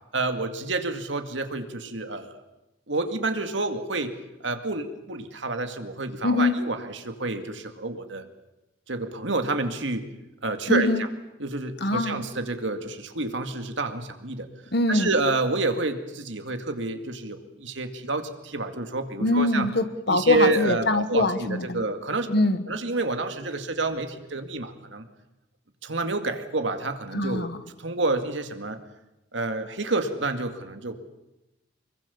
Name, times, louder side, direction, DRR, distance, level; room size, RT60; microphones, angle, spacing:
voice 1, 0.1-2.4 2.9-4.1 4.4-8.3 8.9-10.1 10.4-11.1 11.4-14.5 14.9-19.7 20.1-22.3 22.7-25.0 25.8-27.5 27.8-28.8 29.3-31.0, right 3 dB, 70° right, 7 dB, 2.2 m, -29 dB
voice 2, 6.2-6.6 10.7-11.0 11.8-12.2 14.7-15.1 19.2-21.8 22.3-22.6 27.1-27.6, left 2 dB, 55° left, 11 dB, 1.5 m, -23 dB
25.5 x 23.0 x 7.1 m, 0.94 s
head